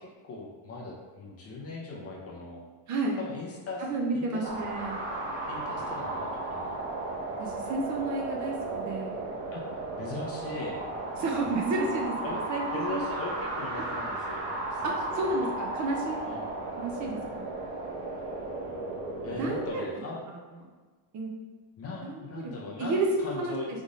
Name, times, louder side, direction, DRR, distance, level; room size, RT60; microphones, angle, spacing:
voice 1, 0.0-2.6 3.2-3.8 4.1-4.5 5.5-6.8 9.5-9.7 10.0-10.8 12.2-12.4 12.7-14.4 14.7-15.3 16.2-16.5 19.2-20.2 21.8-23.7, left 2 dB, 30° left, -2 dB, 0.6 m, -39 dB
voice 2, 3.8-5.0 7.4-9.2 11.2-13.0 14.8-16.3 16.8-17.4 19.3-19.9 20.3-20.4 21.1-21.3 22.0-22.5 22.8-23.5, right 2 dB, 35° right, 0 dB, 0.6 m, -31 dB
sound 1, 4.4-19.7, right 2 dB, 50° right, 1.4 m, -35 dB
3.9 x 3.7 x 3.6 m, 1.4 s
cardioid pair, 165°, 49 cm